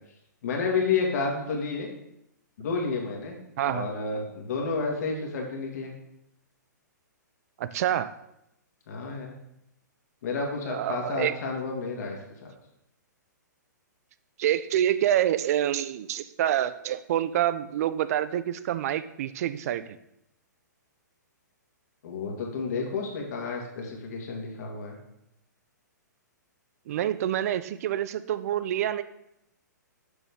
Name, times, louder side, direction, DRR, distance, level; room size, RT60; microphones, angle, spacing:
voice 1, 0.4-1.9 2.6-3.4 3.6-5.9 8.9-9.3 10.2-12.5 22.0-25.0, left 4 dB, 60° left, 0 dB, 2.0 m, -30 dB
voice 2, 3.6-3.9 7.6-8.1 10.7-11.3 14.4-20.0 26.9-29.0, right 11 dB, 55° right, 14 dB, 0.4 m, -27 dB
6.9 x 6.1 x 3.6 m, 0.82 s
hypercardioid pair, 130°, 10 cm